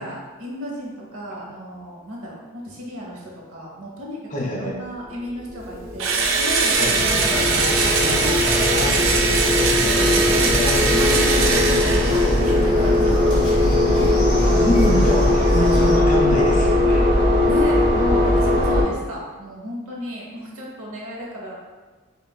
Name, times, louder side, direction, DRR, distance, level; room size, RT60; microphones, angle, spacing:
voice 1, 0.0-9.1 9.9-13.8 15.5-15.8 17.5-21.6, equal, 75° right, -3 dB, 0.8 m, -34 dB
voice 2, 4.3-4.8 6.7-7.0 11.2-12.0 14.4-17.1, equal, 35° left, -1 dB, 0.5 m, -27 dB
sound 1, 5.1-18.8, left 1 dB, 45° right, 1.0 m, -19 dB
Engine / Drill, 6.0-12.6, right 4 dB, 60° right, 0.4 m, -21 dB
sound 2, 6.9-16.0, left 1 dB, 60° left, 1.2 m, -27 dB
5.3 x 2.4 x 2.2 m, 1.3 s
head